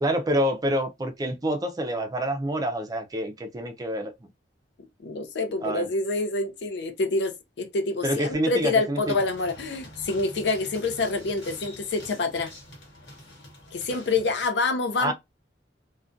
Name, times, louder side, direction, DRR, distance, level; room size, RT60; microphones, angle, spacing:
voice 1, 0.0-4.1 5.6-5.9 8.0-9.0 15.0-15.1, right 1 dB, 20° right, 0.4 m, -27 dB
voice 2, 5.0-12.5 13.7-15.1, left 3 dB, 70° left, 0.5 m, -27 dB
sound 1, 9.0-14.5, left 1 dB, 90° left, 1.2 m, -46 dB
2.3 x 2.2 x 2.5 m
head